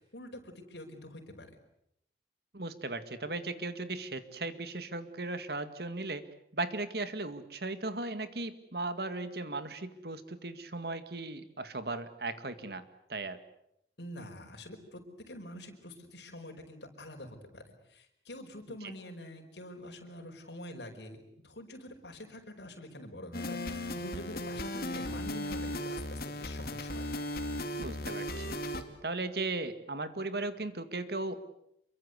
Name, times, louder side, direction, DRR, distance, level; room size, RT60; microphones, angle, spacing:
voice 1, 0.0-1.5 14.0-15.0 15.3-21.2 21.4-27.1, left 1 dB, 75° left, 3 dB, 5.1 m, -46 dB
voice 2, 2.5-6.2 6.5-12.8 13.1-13.4 18.8-18.9 27.8-28.6 29.0-31.4, right 2 dB, 60° right, 11 dB, 2.0 m, -37 dB
sound 1, 23.3-28.8, left 1 dB, 55° left, 2.6 m, -36 dB
27.5 x 23.5 x 8.2 m, 0.79 s
head